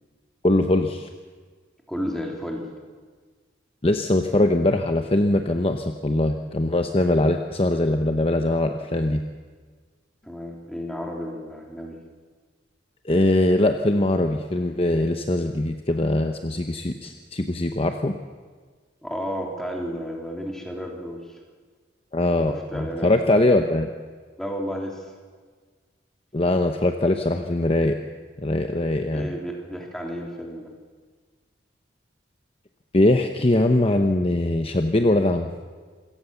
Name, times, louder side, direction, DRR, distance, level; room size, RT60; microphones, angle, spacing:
voice 1, 0.4-1.1 3.8-9.2 13.0-18.1 22.1-23.9 26.3-28.0 28.4-29.3 32.9-35.5, left 1 dB, 30° left, 6 dB, 0.9 m, -22 dB
voice 2, 1.9-2.7 10.2-12.0 19.0-21.4 22.5-23.1 24.4-25.0 29.1-30.7, equal, 5° left, 0 dB, 3.4 m, -32 dB
26.5 x 17.0 x 7.1 m, 1.5 s
head